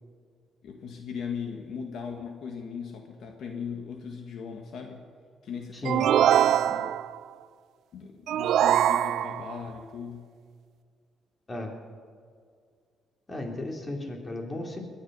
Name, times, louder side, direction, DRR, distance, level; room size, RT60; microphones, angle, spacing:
voice 1, 0.6-5.0 5.4-6.1 6.4-6.9 7.9-10.3, left 6 dB, 70° left, 3 dB, 1.7 m, -38 dB
sound 1, 5.8-7.2 8.3-9.6, right 11 dB, 75° right, 0.4 m, -23 dB
voice 2, 13.3-14.8, left 1 dB, 25° left, 1 dB, 3.5 m, -34 dB
21.5 x 11.0 x 5.5 m, 2.1 s
cardioid pair, 90°, 0 cm